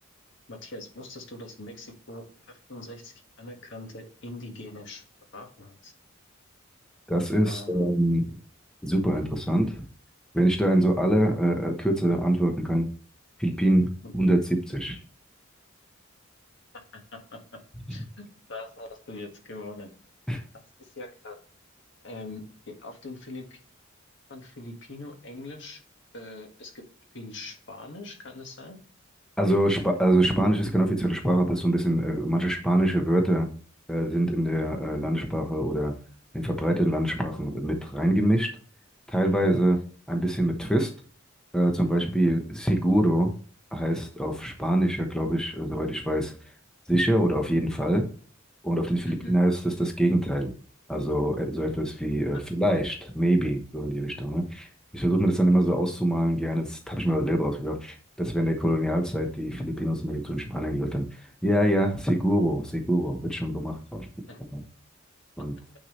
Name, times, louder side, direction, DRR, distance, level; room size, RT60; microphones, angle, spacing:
voice 1, 0.5-2.2 2.7-5.0 5.3-5.9 7.4-7.8 14.0-14.2 16.9-17.6 17.9-19.9 20.8-21.4 22.0-23.6 24.3-25.8 26.1-26.8 27.1-28.8 49.1-49.3 64.3-64.4, left 2 dB, 60° left, 3 dB, 1.7 m, -42 dB
voice 2, 7.1-8.2 8.8-9.8 10.3-12.9 13.4-13.9 14.1-15.0 20.3-20.4 29.4-33.5 33.9-35.9 36.3-38.5 39.1-39.8 40.1-40.9 41.5-43.3 43.7-46.3 46.9-48.1 48.6-50.5 50.9-54.7 54.9-64.0 64.5-64.6 65.4-65.6, right 1 dB, 5° left, 2 dB, 1.0 m, -24 dB
9.2 x 4.6 x 3.1 m, 0.40 s
head